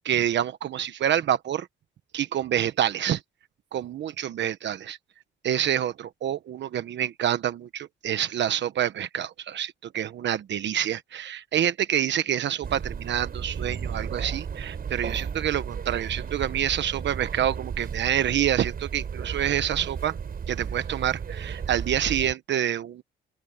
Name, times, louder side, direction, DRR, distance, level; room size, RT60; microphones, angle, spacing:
voice 1, 0.0-1.7 2.1-3.2 3.7-5.0 5.4-20.1 20.5-23.0, right 10 dB, 65° right, 1.1 m, -27 dB
sound 1, 12.6-22.3, right 7 dB, 50° right, 6.5 m, -34 dB
open air
cardioid pair, 90°, 20 cm